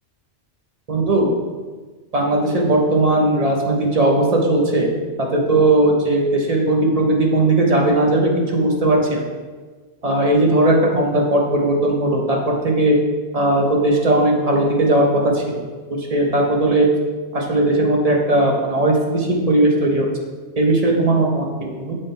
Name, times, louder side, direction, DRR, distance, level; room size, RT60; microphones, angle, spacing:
voice 1, 0.9-1.3 2.1-4.9 5.2-9.2 10.0-13.0 13.3-15.4 16.0-16.9 17.3-20.1 20.6-22.0, right 1 dB, 35° right, -1 dB, 1.0 m, -18 dB
7.4 x 3.6 x 4.1 m, 1.4 s
omnidirectional pair, 1.2 m